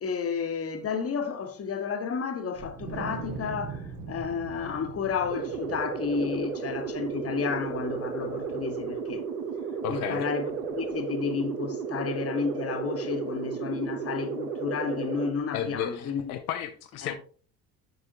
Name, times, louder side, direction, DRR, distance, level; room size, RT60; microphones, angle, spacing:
voice 1, 0.0-9.2 9.9-16.2 17.0-17.1, left 6 dB, 30° left, 1.2 m, -31 dB
Wind, 2.6-9.1, right 5 dB, 60° right, 1.7 m, -42 dB
sound 1, 5.3-15.3, right 5 dB, 75° right, 1.1 m, -33 dB
voice 2, 9.8-10.3 15.5-17.2, left 9 dB, 65° left, 0.8 m, -33 dB
8.0 x 5.4 x 2.8 m
figure-of-eight pair, 60°, 47 cm